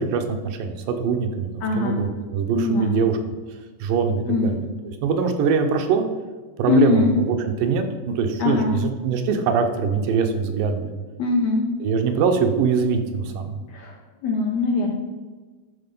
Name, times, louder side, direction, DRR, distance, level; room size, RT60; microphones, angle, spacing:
voice 1, 0.0-3.2 3.8-6.1 6.6-10.9 11.8-13.6, right 5 dB, 80° right, 5 dB, 2.4 m, -23 dB
voice 2, 1.6-2.0 2.6-2.9 4.3-4.5 6.7-7.1 8.4-8.8 11.2-11.6 13.7-13.9 14.2-14.9, left 4 dB, 75° left, 0 dB, 1.6 m, -21 dB
12.5 x 4.3 x 5.4 m, 1.3 s
omnidirectional pair, 3.9 m